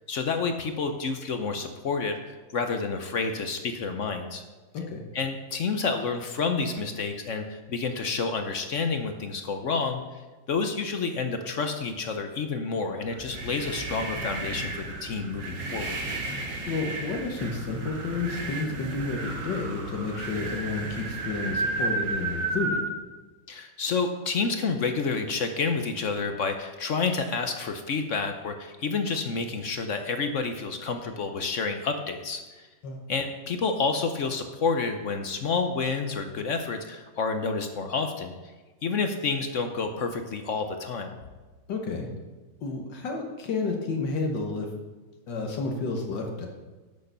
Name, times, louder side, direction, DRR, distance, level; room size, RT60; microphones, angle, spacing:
voice 1, 0.1-4.4 5.1-10.0 10.5-16.0 23.5-32.6 33.1-38.3 38.8-41.1, left 4 dB, 55° left, 6 dB, 0.9 m, -29 dB
sound 1, 13.1-22.9, right 2 dB, 70° right, 2.2 m, -33 dB
voice 2, 16.7-22.8 32.8-33.0 41.7-42.1 42.6-44.7 45.3-46.5, left 3 dB, 80° left, 2 dB, 1.9 m, -31 dB
10.5 x 6.5 x 6.7 m, 1.3 s
omnidirectional pair, 2.0 m